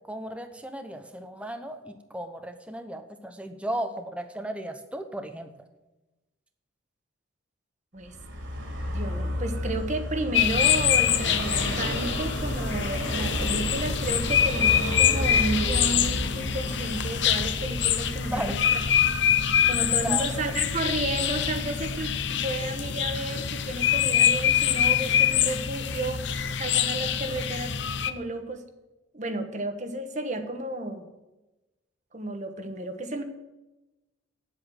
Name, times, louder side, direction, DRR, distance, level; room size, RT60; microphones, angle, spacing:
voice 1, 0.1-5.5 18.3-18.6 20.0-20.4, right 1 dB, 5° right, 6 dB, 0.7 m, -35 dB
Vehicle, 8.0-23.5, equal, 75° right, 3.0 m, -33 dB
voice 2, 8.9-18.6 19.7-27.7 28.1-28.6 29.1-31.0 32.1-33.2, right 2 dB, 35° right, 7 dB, 1.2 m, -32 dB
sound 1, 10.3-28.1, left 9 dB, 60° left, 0.6 m, -25 dB
9.3 x 7.9 x 7.7 m, 1.0 s
head